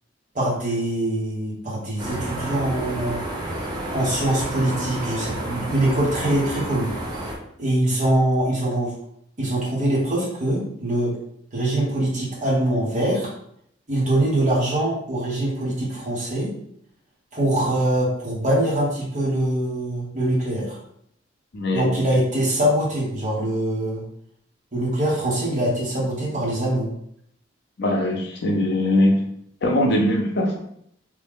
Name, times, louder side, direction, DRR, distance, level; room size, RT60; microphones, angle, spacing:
voice 1, 0.3-3.2 3.9-6.9 7.6-8.9 9.4-11.2 11.5-13.3 13.9-16.5 17.3-20.8 21.7-24.0 24.7-26.9, right 1 dB, 40° right, -6 dB, 1.2 m, -23 dB
sound 1, 2.0-7.3, right 1 dB, 20° right, 0.7 m, -30 dB
voice 2, 21.5-22.0 27.8-29.2 29.6-30.6, left 1 dB, 55° left, 2 dB, 0.5 m, -21 dB
3.2 x 2.3 x 3.5 m, 0.71 s
head